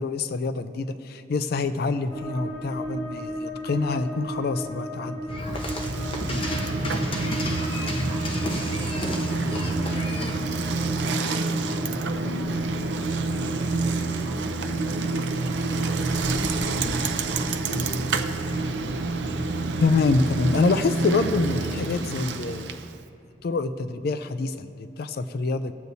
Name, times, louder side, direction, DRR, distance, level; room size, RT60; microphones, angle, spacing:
voice 1, 0.0-5.2 19.8-22.8 23.4-25.7, left 3 dB, 60° left, 11 dB, 0.4 m, -26 dB
sound 1, 2.1-21.5, right 1 dB, 15° left, 2.4 m, -37 dB
sound 2, 5.3-10.4, left 1 dB, 30° left, 0.9 m, -31 dB
Bicycle, 5.5-23.0, right 3 dB, 75° right, 0.6 m, -28 dB
voice 2, 7.7-17.0 17.3-18.4, right 1 dB, 25° right, -7 dB, 2.4 m, -41 dB
19.0 x 8.0 x 2.7 m, 2.6 s
head